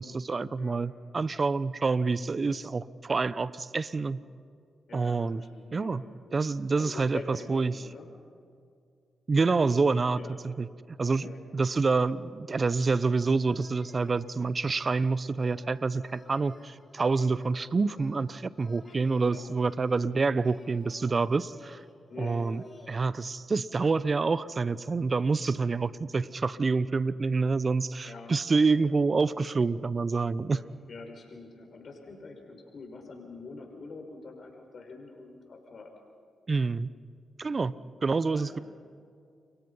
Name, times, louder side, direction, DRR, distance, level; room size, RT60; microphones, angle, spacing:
voice 1, 0.0-4.2 4.9-5.4 5.7-6.0 6.3-7.8 9.3-10.7 11.0-11.3 11.5-21.8 22.2-30.6 36.5-36.9 37.4-37.7 38.0-38.6, right 4 dB, 45° right, 17 dB, 0.9 m, -27 dB
voice 2, 4.9-8.1 9.6-9.8 10.2-10.4 11.0-11.4 18.8-19.5 22.1-22.5 28.0-29.0 30.5-35.9 38.3-38.6, left 3 dB, 60° left, 3 dB, 5.7 m, -46 dB
sound 1, 12.8-23.0, left 2 dB, 35° left, 5.1 m, -56 dB
29.0 x 23.0 x 5.6 m, 2.2 s
supercardioid pair, 45°, 0 cm